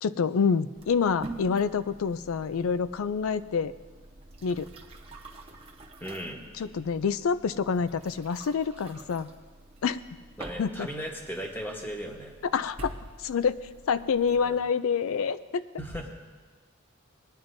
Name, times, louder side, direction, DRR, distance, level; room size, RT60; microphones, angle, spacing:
voice 1, 0.0-3.7 4.4-4.7 6.6-9.3 9.8-10.0 10.6-10.9 12.5-13.6 13.9-15.6, left 6 dB, 90° left, 14 dB, 0.4 m, -27 dB
sound 1, 0.7-14.6, right 1 dB, 30° right, 0.9 m, -47 dB
voice 2, 6.0-6.5 10.4-12.3 14.4-14.6 15.8-16.1, equal, 10° left, 0 dB, 1.1 m, -37 dB
19.5 x 10.5 x 2.6 m, 1.4 s
head